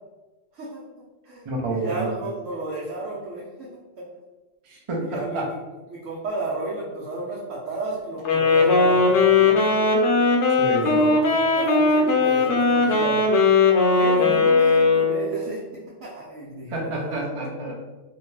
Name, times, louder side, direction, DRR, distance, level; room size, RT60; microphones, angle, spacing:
voice 1, 0.5-0.8 1.2-1.4 1.7-3.7 4.0-4.1 5.0-5.6 5.9-10.0 10.8-13.3 13.9-17.0, right 2 dB, 85° right, -7 dB, 1.0 m, -33 dB
voice 2, 1.5-2.1 4.6-5.5 10.6-11.1 16.7-17.7, right 2 dB, 50° right, -2 dB, 0.4 m, -29 dB
Wind instrument woodwind instrument, 8.2-15.4, left 3 dB, 70° left, 0.9 m, -19 dB
2.7 x 2.1 x 3.1 m, 1.2 s
omnidirectional pair, 1.3 m